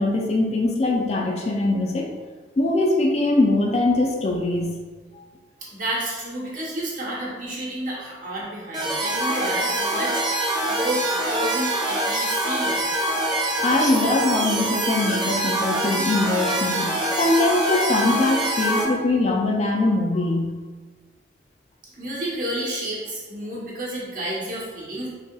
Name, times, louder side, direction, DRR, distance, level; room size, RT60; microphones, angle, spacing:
voice 1, 0.0-2.1 2.6-4.7 5.1-5.2 13.6-20.5, left 2 dB, 35° left, 1 dB, 0.3 m, -22 dB
voice 2, 5.7-10.2 10.7-12.8 22.0-25.1, right 1 dB, 50° right, -5 dB, 0.9 m, -30 dB
sound 1, 8.7-18.8, right 1 dB, 25° right, 0.5 m, -24 dB
4.0 x 2.7 x 2.2 m, 1.4 s
head